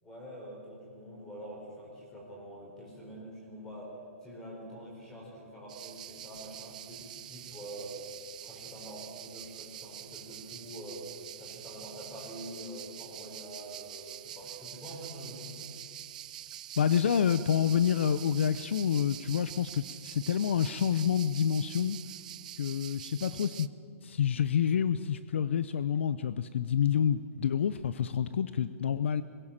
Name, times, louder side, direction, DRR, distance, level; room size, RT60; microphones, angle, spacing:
voice 1, 0.0-8.0 8.4-15.7, right 1 dB, 10° left, -3 dB, 4.3 m, -45 dB
sound 1, 5.7-23.7, right 12 dB, 30° right, 0.4 m, -46 dB
Water tap faucet, 5.8-19.2, right 6 dB, 10° right, 2.6 m, -63 dB
Telephone, 11.5-14.6 15.0-15.1, right 10 dB, 60° right, 3.0 m, -57 dB
voice 2, 16.8-22.0 22.6-23.7 24.0-29.2, left 8 dB, 55° left, 14 dB, 0.5 m, -28 dB
21.5 x 16.5 x 7.3 m, 2.2 s
hypercardioid pair, 175°, 8 cm